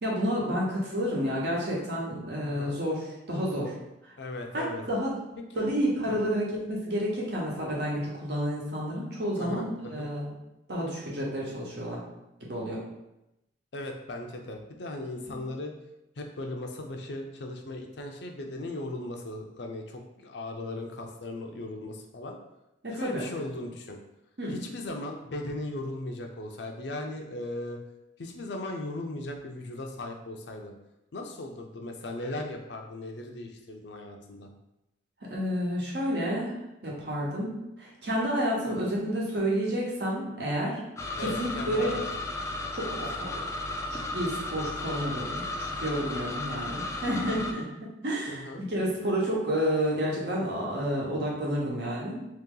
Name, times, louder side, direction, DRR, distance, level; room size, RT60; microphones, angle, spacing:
voice 1, 0.0-3.7 4.0-4.1 4.5-5.1 5.6-10.3 10.7-12.0 12.5-12.8 15.3-15.4 22.8-23.3 24.4-24.5 35.3-36.6 36.8-40.8 41.2-41.9 42.7-43.3 43.9-47.6 48.0-52.2, equal, 65° right, -4 dB, 1.1 m, -30 dB
voice 2, 2.4-2.8 4.2-4.8 5.5-5.7 6.1-6.2 9.4-10.1 13.7-15.7 16.2-22.4 22.9-24.0 24.5-27.8 28.2-30.7 31.1-34.5 38.8-38.9 41.2-42.0 48.3-48.6, left 2 dB, 70° left, 3 dB, 0.5 m, -37 dB
sound 1, 41.0-47.5, left 2 dB, 15° left, 0.3 m, -34 dB
3.0 x 2.9 x 3.7 m, 0.91 s
head